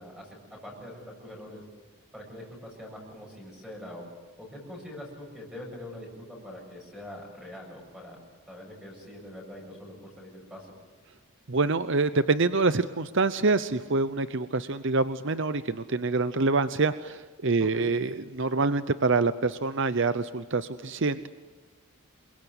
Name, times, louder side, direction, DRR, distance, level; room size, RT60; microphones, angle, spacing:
voice 1, 0.0-1.6 2.1-4.0 4.4-8.2 8.5-10.7 17.6-17.9, left 1 dB, 5° right, -2 dB, 7.6 m, -43 dB
voice 2, 11.5-21.3, right 3 dB, 55° right, 12 dB, 0.8 m, -26 dB
28.5 x 23.0 x 8.2 m, 1.2 s
head